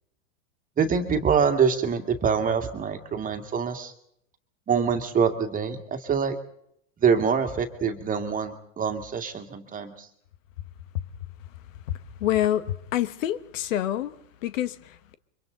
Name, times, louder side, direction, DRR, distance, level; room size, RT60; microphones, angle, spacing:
voice 1, 0.8-3.9 4.7-6.4 7.0-10.1, right 6 dB, 20° right, 2.1 m, -25 dB
voice 2, 11.7-15.1, left 12 dB, 75° left, 1.5 m, -28 dB
30.0 x 24.0 x 3.9 m
supercardioid pair, 135°, 39 cm